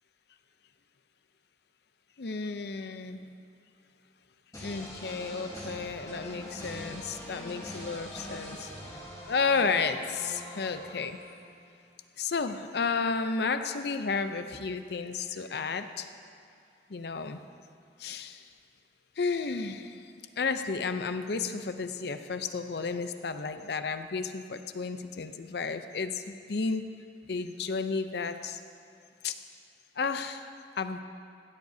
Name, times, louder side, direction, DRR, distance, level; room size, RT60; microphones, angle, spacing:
voice 1, 2.2-3.2 4.6-8.7 9.2-11.2 12.2-16.1 16.9-17.4 18.0-18.4 19.2-20.0 20.4-26.9 27.3-28.6 29.2-29.4 30.0-30.5 30.8-31.0, left 4 dB, 65° left, 9 dB, 0.6 m, -32 dB
sound 1, 4.5-11.5, equal, 20° left, 3.7 m, -43 dB
16.5 x 14.0 x 2.7 m, 2.4 s
head